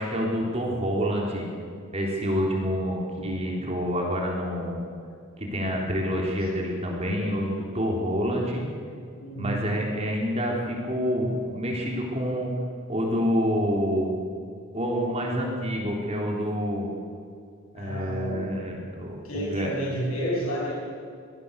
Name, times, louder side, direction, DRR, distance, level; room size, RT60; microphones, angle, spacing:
voice 1, 0.0-1.5 1.9-4.8 5.4-8.7 9.4-12.5 12.9-14.1 14.7-16.9 17.7-19.7, equal, 30° right, -1 dB, 3.6 m, -27 dB
voice 2, 3.2-3.6 9.2-9.7 17.7-18.5 19.2-20.7, right 1 dB, 80° left, -4 dB, 6.3 m, -31 dB
24.0 x 18.0 x 7.0 m, 2.3 s
head